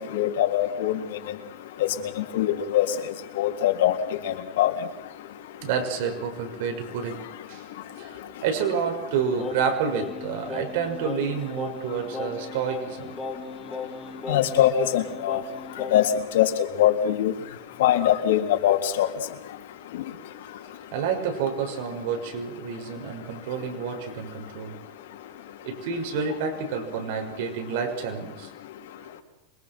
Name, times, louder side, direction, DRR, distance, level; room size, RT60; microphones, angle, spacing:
voice 1, 0.1-0.9 2.3-2.9 3.4-3.9 4.3-4.7 14.3-15.4 15.9-16.1 16.3-16.5 16.8-17.3 17.8-19.1, left 12 dB, 75° left, 3 dB, 3.5 m, -22 dB
voice 2, 5.6-7.2 7.5-7.6 8.0-8.1 8.4-13.2 20.9-24.7 25.6-28.5, right 6 dB, 60° right, 4 dB, 6.2 m, -29 dB
Singing, 9.4-16.2, left 3 dB, 10° left, 2.8 m, -37 dB
27.0 x 24.0 x 6.2 m, 0.87 s
supercardioid pair, 165°, 0 cm